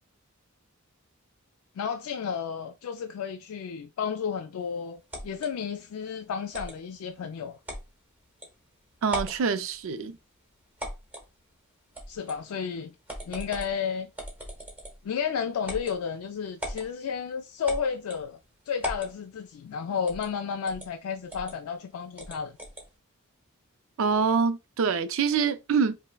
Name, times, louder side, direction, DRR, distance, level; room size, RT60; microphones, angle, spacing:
voice 1, 1.8-7.6 12.1-12.9 13.3-14.1 15.0-18.4 18.7-22.5, left 6 dB, 85° left, 0.3 m, -32 dB
sound 1, 5.1-5.5 6.5-6.8 7.7-7.9 8.4-8.5 9.0-9.4 10.8-11.3 11.9-12.4 13.1-13.7 14.2-15.0 15.6-16.0 16.6-16.9 17.7-18.2 18.8-19.1 20.1-20.3 20.7-20.9 21.3-21.5 22.2-22.9, equal, 10° right, 1.0 m, -38 dB
voice 2, 9.0-10.2 24.0-26.0, right 5 dB, 65° right, 0.4 m, -25 dB
5.5 x 2.0 x 2.2 m
head